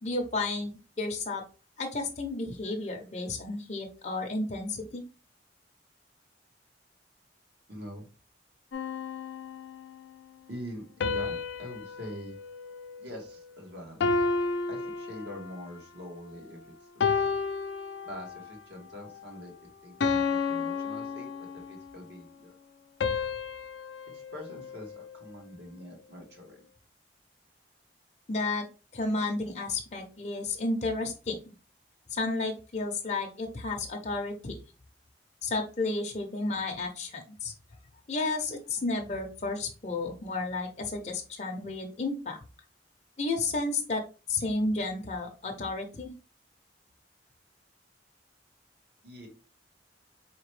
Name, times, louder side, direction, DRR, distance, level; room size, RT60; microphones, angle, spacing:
voice 1, 0.0-1.4 1.8-5.0 28.3-28.6 28.9-31.4 32.1-34.6 35.4-37.5 38.1-42.4 43.2-44.0 44.3-46.1, left 3 dB, 40° left, 2 dB, 0.6 m, -32 dB
voice 2, 7.7-8.1 10.5-12.4 13.0-14.0 14.7-17.3 18.0-19.5 19.8-22.5 24.1-26.6 49.0-49.3, equal, 65° right, 1 dB, 1.3 m, -44 dB
sound 1, 8.7-10.0 11.0-13.5 14.0-15.7 16.3-16.5 17.0-18.5 19.0-19.3 20.0-21.9 23.0-25.4, left 4 dB, 85° left, 0.5 m, -32 dB
4.3 x 2.9 x 3.1 m, 0.33 s
head